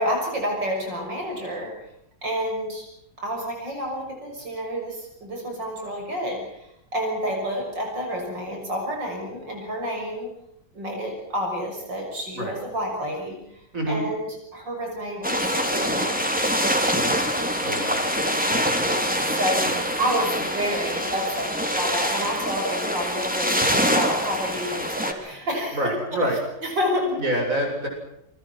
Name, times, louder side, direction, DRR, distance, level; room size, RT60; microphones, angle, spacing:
voice 1, 0.0-1.8 2.2-2.9 3.2-10.3 10.7-16.5 18.8-26.3 26.6-27.2, equal, 80° right, 2 dB, 6.9 m, -29 dB
voice 2, 13.7-14.0 17.6-18.1 19.7-19.8 25.7-26.4 27.2-27.9, right 1 dB, 45° right, 2 dB, 8.0 m, -26 dB
sound 1, 15.2-25.1, equal, 5° right, 3.3 m, -24 dB
28.0 x 24.0 x 6.0 m, 0.78 s
omnidirectional pair, 1.9 m